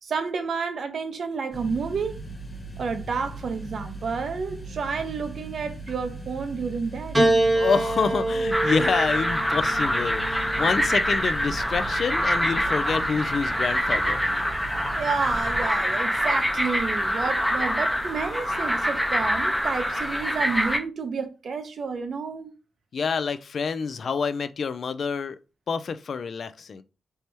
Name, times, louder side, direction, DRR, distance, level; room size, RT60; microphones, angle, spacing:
voice 1, 0.0-2.2 2.8-7.2 15.0-22.5, right 5 dB, 55° right, 0.7 m, -30 dB
sound 1, 1.5-15.7, right 2 dB, 20° left, 1.2 m, -39 dB
Piano, 7.1-11.6 12.7-13.4, right 2 dB, 15° right, 0.9 m, -26 dB
voice 2, 7.5-14.2 22.9-25.4 25.7-26.8, left 5 dB, 50° left, 0.3 m, -27 dB
sound 2, 8.5-20.8, equal, ahead, 0.6 m, -25 dB
4.4 x 3.3 x 2.8 m
wide cardioid pair, 170°, 0 cm